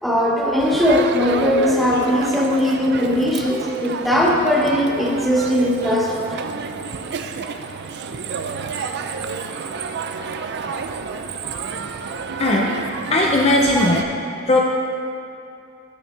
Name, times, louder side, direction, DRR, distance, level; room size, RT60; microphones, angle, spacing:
voice 1, 0.0-6.4, left 1 dB, ahead, -4 dB, 1.1 m, -19 dB
Crowd, 0.6-14.0, right 5 dB, 55° right, 0.4 m, -29 dB
voice 2, 12.4-12.7 13.1-14.0 14.5-14.6, left 2 dB, 30° left, -1 dB, 0.6 m, -17 dB
14.5 x 6.3 x 3.3 m, 2.6 s
head